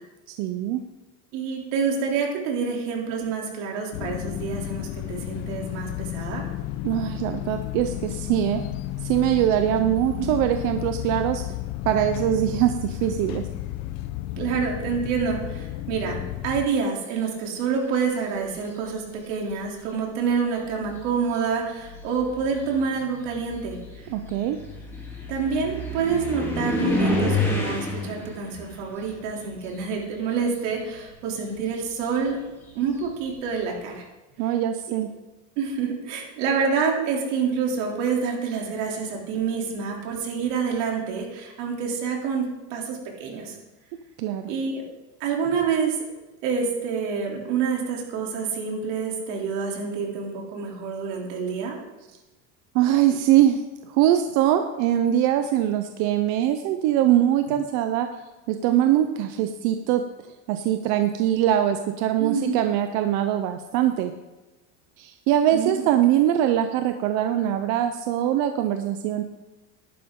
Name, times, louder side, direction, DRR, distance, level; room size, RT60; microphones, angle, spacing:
voice 1, 0.3-0.8 6.8-8.6 9.0-11.4 11.9-13.5 24.1-24.6 34.4-35.1 44.2-44.5 52.7-58.1 58.5-60.1 60.5-64.2 65.0-69.2, right 11 dB, 55° right, 7 dB, 0.8 m, -22 dB
voice 2, 1.3-6.4 8.5-8.6 14.4-23.8 25.3-32.4 32.7-34.0 35.6-43.6 44.5-44.9 45.2-46.0 46.4-51.8 62.2-62.6 65.5-65.8, right 5 dB, 80° right, -1 dB, 3.4 m, -27 dB
sound 1, 3.9-16.7, left 14 dB, 80° left, 0.9 m, -32 dB
sound 2, 18.4-18.9 19.9-20.0 20.6-30.5 30.8-33.4, left 2 dB, 5° left, 3.1 m, -30 dB
14.5 x 11.5 x 3.8 m, 1.1 s
cardioid pair, 170°, 36 cm